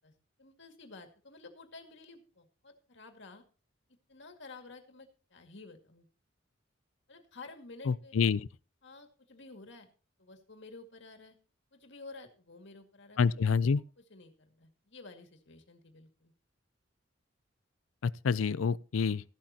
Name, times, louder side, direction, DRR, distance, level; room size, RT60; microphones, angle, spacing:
voice 1, 0.4-3.4 4.1-6.1 7.1-8.2 8.8-9.9 10.2-11.4 11.7-13.3 14.0-16.3 18.9-19.2, left 3 dB, 65° left, 2.1 m, -52 dB
voice 2, 7.9-8.5 13.2-13.8 18.0-19.2, left 5 dB, 85° left, 0.5 m, -27 dB
15.0 x 12.0 x 2.8 m
head